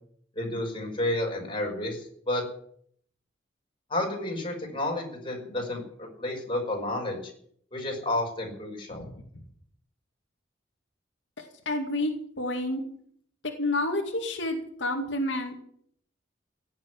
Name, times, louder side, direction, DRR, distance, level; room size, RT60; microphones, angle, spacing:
voice 1, 0.4-2.4 3.9-7.2 7.7-9.0, left 1 dB, 30° left, 0 dB, 5.4 m, -31 dB
voice 2, 11.4-12.1 12.4-12.8 13.4-15.6, left 1 dB, 85° left, 2 dB, 2.3 m, -29 dB
16.5 x 7.3 x 10.0 m, 0.64 s
head